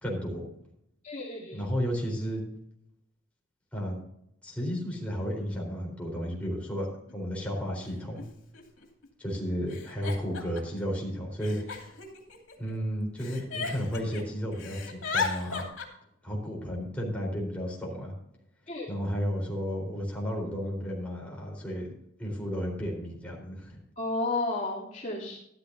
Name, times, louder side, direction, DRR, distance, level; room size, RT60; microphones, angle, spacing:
voice 1, 0.0-0.4 1.5-2.4 3.7-4.0 4.4-8.2 9.2-11.6 12.6-15.7 16.2-18.1 18.9-21.9 22.2-23.8, equal, 5° left, -2 dB, 4.1 m, -33 dB
voice 2, 1.0-1.6 18.7-18.9 24.0-25.4, left 2 dB, 40° left, -6 dB, 3.0 m, -32 dB
Giggle, 7.1-7.2 8.2-8.3 8.5-9.1 9.7-10.8 11.4-12.7 13.2-14.2 14.5-15.9, left 5 dB, 75° left, 2.6 m, -35 dB
13.0 x 12.5 x 2.7 m, 0.76 s
head